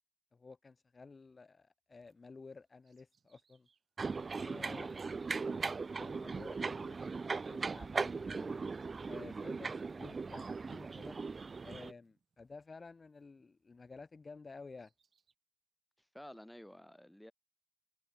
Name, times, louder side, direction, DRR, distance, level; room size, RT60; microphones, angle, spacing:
voice 1, 0.3-3.7 4.4-5.0 5.4-8.6 9.1-11.2 11.6-14.9, left 4 dB, 45° left, 0.5 m, -53 dB
Bird vocalization bird call bird song, 1.9-14.0 14.5-15.3, right 6 dB, 70° right, 4.4 m, -77 dB
sound 1, 4.0-11.9, right 4 dB, 50° right, 0.5 m, -39 dB
voice 2, 16.0-17.3, left 1 dB, 5° left, 1.0 m, -52 dB
cardioid pair, 75°, 0 cm